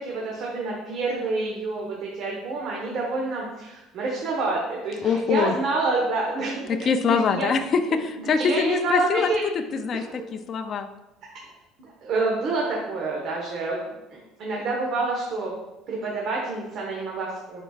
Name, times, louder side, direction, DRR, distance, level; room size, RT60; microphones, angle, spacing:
voice 1, 0.0-6.8 7.1-7.5 8.2-9.4 9.9-10.2 11.8-15.5 15.9-17.6, right 3 dB, 50° right, -3 dB, 1.2 m, -28 dB
voice 2, 5.0-5.5 6.7-9.3 9.8-10.9, left 6 dB, 35° left, 7 dB, 0.5 m, -24 dB
10.5 x 4.4 x 2.4 m, 1.0 s
cardioid pair, 150°, 0 cm